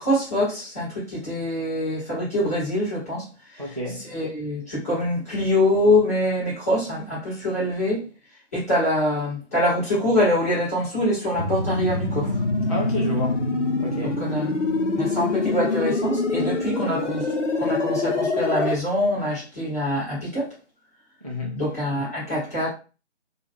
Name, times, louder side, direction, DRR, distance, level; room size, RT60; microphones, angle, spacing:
voice 1, 0.0-3.2 3.6-8.0 8.5-12.4 14.0-14.6 15.0-20.5 21.5-22.7, left 1 dB, 15° left, 0.9 m, -24 dB
voice 2, 3.6-4.1 12.7-13.5 13.8-14.2 21.2-21.6, left 1 dB, 35° right, 0.4 m, -30 dB
sound 1, 11.3-18.7, left 3 dB, 85° left, 0.8 m, -25 dB
2.3 x 2.2 x 3.2 m
figure-of-eight pair, 150°, 36 cm